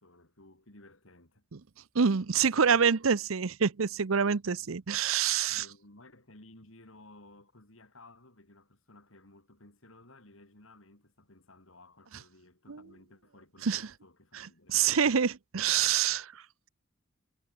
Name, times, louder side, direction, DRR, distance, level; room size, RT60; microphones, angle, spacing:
voice 1, 0.0-1.5 2.5-3.0 3.8-3.9 4.5-4.7 5.5-14.8, left 2 dB, 80° left, 5.4 m, -56 dB
voice 2, 1.9-5.6 12.7-12.8 13.6-13.8 14.7-16.3, right 7 dB, 85° right, 0.7 m, -26 dB
head